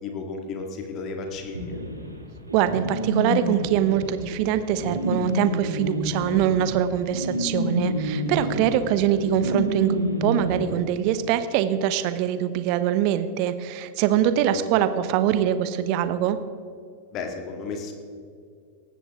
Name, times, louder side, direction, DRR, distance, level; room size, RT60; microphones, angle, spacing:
voice 1, 0.0-1.8 8.2-8.9 14.5-14.6 17.1-17.9, left 4 dB, 35° left, 4 dB, 2.0 m, -34 dB
sound 1, 1.5-10.6, left 1 dB, 80° right, 2.0 m, -29 dB
voice 2, 2.5-16.4, right 10 dB, 45° right, 12 dB, 1.0 m, -23 dB
18.0 x 15.0 x 3.6 m, 2.3 s
figure-of-eight pair, 90°, 0 cm